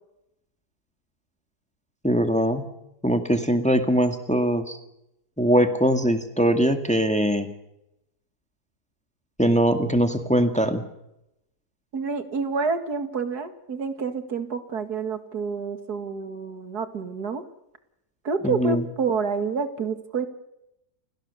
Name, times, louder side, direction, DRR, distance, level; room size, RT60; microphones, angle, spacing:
voice 1, 2.0-2.6 3.0-4.8 5.4-7.5 9.4-10.8 18.4-18.8, equal, 5° left, 7 dB, 1.8 m, -21 dB
voice 2, 11.9-17.4 18.2-20.3, right 5 dB, 70° right, 8 dB, 2.5 m, -28 dB
29.5 x 17.0 x 7.0 m, 0.85 s
omnidirectional pair, 1.7 m